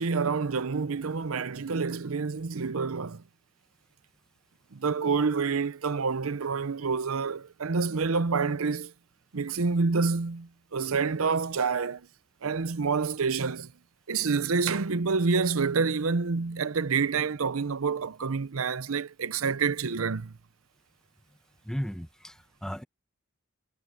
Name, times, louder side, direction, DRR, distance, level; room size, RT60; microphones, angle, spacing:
voice 1, 0.0-3.2 4.7-8.9 9.3-12.1 12.4-13.7 14.1-20.3, right 5 dB, 90° right, 0.7 m, -28 dB
voice 2, 21.7-22.8, equal, 5° left, 1.2 m, -35 dB
head